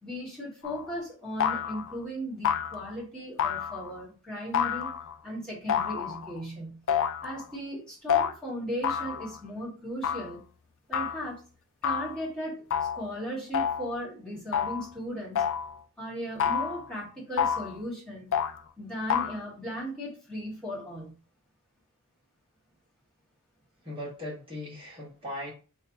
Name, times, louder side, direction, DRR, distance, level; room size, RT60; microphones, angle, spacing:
voice 1, 0.0-4.9 5.2-6.8 7.2-10.4 10.9-11.4 11.8-12.7 12.9-15.4 16.0-18.3 18.8-21.1, equal, 5° left, -6 dB, 1.8 m, -37 dB
sound 1, 0.6-0.9 1.4-1.9 2.4-2.9 3.4-4.0 4.5-5.2 5.7-6.4 6.9-7.4 8.1-8.3 8.8-9.4 10.0-10.3 10.9-11.2 11.8-12.2 12.7-13.1 13.5-13.9 14.5-14.9 15.3-15.7 16.4-16.9 17.4-17.8 18.3-18.6 19.1-19.4, left 8 dB, 60° left, 0.4 m, -29 dB
voice 2, 23.8-25.5, left 1 dB, 25° right, -4 dB, 1.5 m, -38 dB
3.2 x 2.3 x 3.9 m, 0.37 s
head